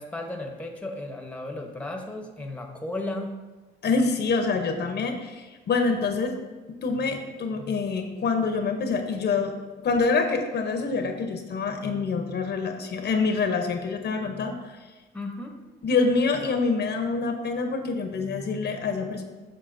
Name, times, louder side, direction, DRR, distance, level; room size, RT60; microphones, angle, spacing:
voice 1, 0.0-3.4 15.1-15.5, left 2 dB, 5° left, 3 dB, 0.9 m, -34 dB
voice 2, 3.8-6.3 6.8-9.5 9.8-14.8 15.8-19.2, left 4 dB, 60° left, 6 dB, 0.8 m, -26 dB
7.7 x 6.4 x 2.6 m, 1.2 s
cardioid pair, 90°, 20 cm